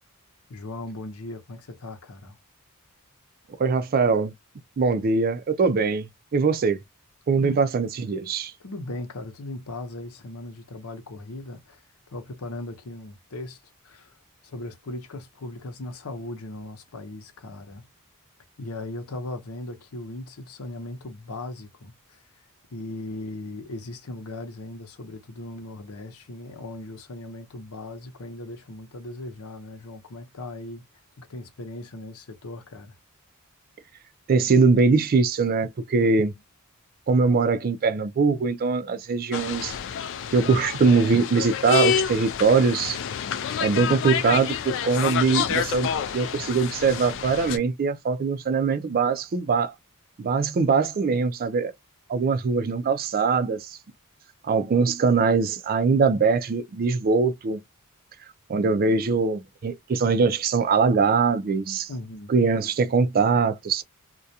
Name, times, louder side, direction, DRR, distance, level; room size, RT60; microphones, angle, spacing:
voice 1, 0.5-2.4 7.4-7.6 8.6-11.8 12.1-14.2 14.4-17.9 18.6-22.2 22.7-30.8 31.2-33.0 36.0-36.4 61.9-62.3, left 2 dB, 80° left, 0.7 m, -38 dB
voice 2, 3.6-4.3 4.8-6.8 7.3-8.5 34.3-36.3 37.1-39.7 40.3-43.0 43.6-49.7 50.2-51.7 52.1-53.8 54.4-57.6 58.5-61.9 62.3-63.8, right 4 dB, 40° right, 0.4 m, -22 dB
sound 1, 39.3-47.6, left 8 dB, 60° left, 0.3 m, -28 dB
2.3 x 2.2 x 2.6 m
head